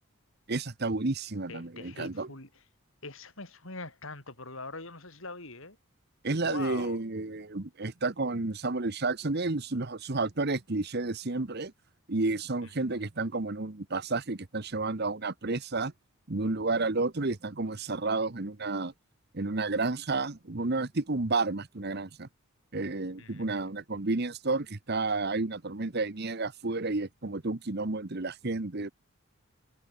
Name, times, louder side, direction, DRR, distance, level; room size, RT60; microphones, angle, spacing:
voice 1, 0.5-2.3 6.2-11.7 12.1-15.9 16.3-18.9 19.3-22.3 22.7-28.9, right 3 dB, 45° right, 1.1 m, -31 dB
voice 2, 1.5-2.6 3.0-5.8 6.4-7.0 12.6-13.0 23.2-23.7, left 3 dB, 65° left, 5.7 m, -43 dB
head